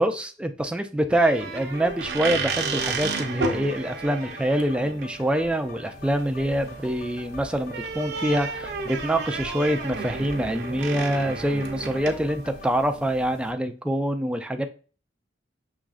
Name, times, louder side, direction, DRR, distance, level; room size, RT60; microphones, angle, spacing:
voice 1, 0.0-14.7, right 1 dB, 5° right, 7 dB, 0.4 m, -25 dB
sound 1, 1.1-13.5, right 4 dB, 60° right, 0.7 m, -33 dB
sound 2, 1.3-12.7, left 1 dB, 50° left, 0.6 m, -45 dB
6.1 x 3.1 x 2.4 m, 0.38 s
head